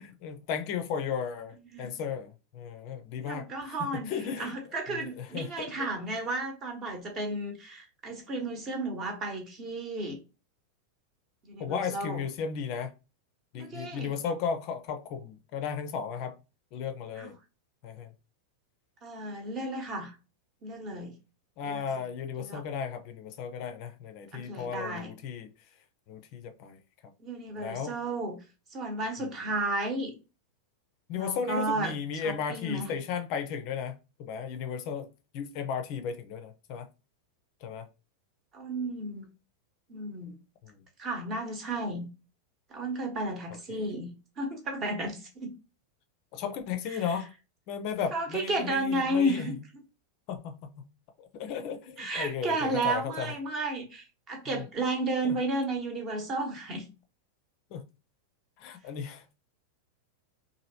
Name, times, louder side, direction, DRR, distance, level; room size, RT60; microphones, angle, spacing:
voice 1, 0.0-4.5 4.9-5.8 11.6-12.9 13.5-16.3 16.7-17.3 17.8-18.1 21.6-25.5 26.1-26.8 27.6-27.9 31.1-35.1 35.3-36.9 37.6-37.9 40.6-40.8 43.7-44.0 46.3-47.3 47.7-49.5 50.3-50.9 51.2-53.3 54.5-54.6 55.2-55.4 57.7-57.8 58.6-59.3, left 6 dB, 45° left, 0.4 m, -35 dB
voice 2, 3.2-4.1 4.4-10.2 11.4-12.2 13.6-14.1 17.1-17.3 19.0-20.2 20.6-21.1 21.6-21.9 22.4-22.6 24.3-25.1 27.2-28.4 28.7-30.1 31.1-31.9 32.2-32.9 38.5-39.3 39.9-40.4 41.0-42.1 42.7-45.5 46.9-47.2 48.1-49.8 52.0-56.8, right 2 dB, 30° right, 0.9 m, -33 dB
3.0 x 2.5 x 2.6 m
figure-of-eight pair, 90°, 0 cm